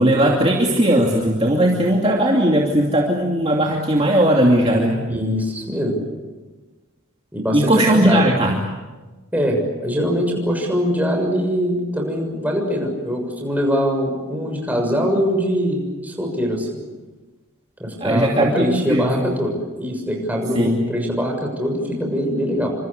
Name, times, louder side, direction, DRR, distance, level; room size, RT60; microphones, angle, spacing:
voice 1, 0.0-5.0 7.5-8.6 18.0-19.1 20.5-20.8, right 1 dB, 25° right, -1 dB, 2.7 m, -17 dB
voice 2, 4.9-6.0 7.3-8.3 9.3-16.8 17.8-22.7, equal, 5° right, 1 dB, 6.7 m, -22 dB
29.5 x 26.5 x 6.7 m, 1.2 s
head